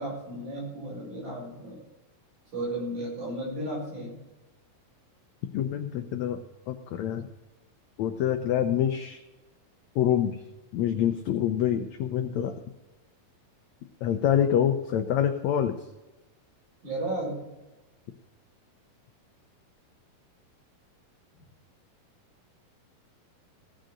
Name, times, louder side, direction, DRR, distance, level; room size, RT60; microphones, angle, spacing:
voice 1, 0.0-1.8 2.5-4.1 16.8-17.4, right 1 dB, 55° right, -3 dB, 6.7 m, -34 dB
voice 2, 5.5-6.4 6.7-7.3 8.0-9.2 9.9-10.4 10.7-12.5 14.0-15.8, left 9 dB, 85° left, 6 dB, 1.6 m, -26 dB
16.5 x 6.5 x 7.8 m, 1.0 s
omnidirectional pair, 4.1 m